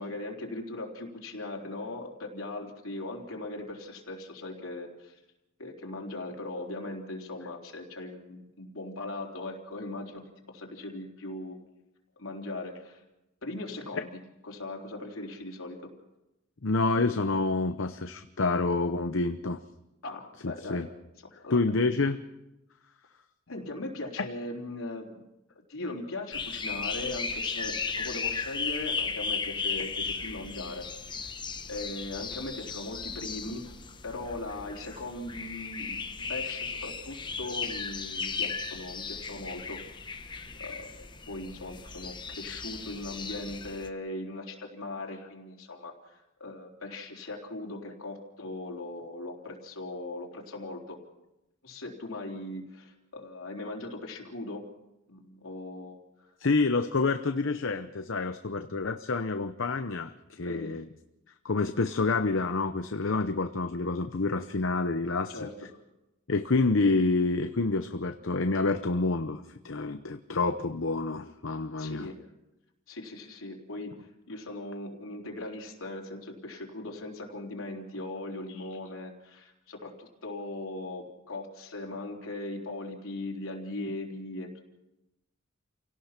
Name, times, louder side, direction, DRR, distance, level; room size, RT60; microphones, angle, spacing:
voice 1, 0.0-5.1 5.6-11.6 12.2-13.0 13.4-14.1 14.4-15.8 20.0-20.9 21.2-21.9 23.5-25.2 25.7-30.9 31.7-33.7 34.0-39.8 40.3-51.0 51.6-54.7 55.1-56.0 60.4-60.7 65.3-65.5 71.8-72.2 72.9-84.6, left 2 dB, 85° left, 0 dB, 3.7 m, -39 dB
voice 2, 16.6-19.6 20.4-20.9 21.5-22.2 56.4-60.8 61.4-65.5 66.3-72.1 78.5-78.6, left 3 dB, 65° left, 8 dB, 0.8 m, -28 dB
sound 1, 26.3-43.9, left 5 dB, 20° left, 1.1 m, -36 dB
29.0 x 17.5 x 5.9 m, 0.94 s
head